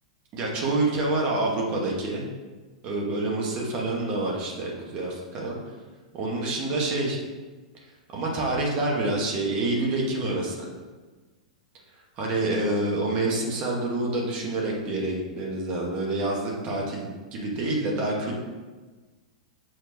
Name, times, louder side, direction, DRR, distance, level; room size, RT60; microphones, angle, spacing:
voice 1, 0.3-2.3 2.8-5.6 6.1-7.2 8.1-10.7 12.2-18.4, right 2 dB, 35° right, -2 dB, 2.1 m, -27 dB
7.9 x 4.4 x 4.7 m, 1.3 s
figure-of-eight pair, 95°, 3 cm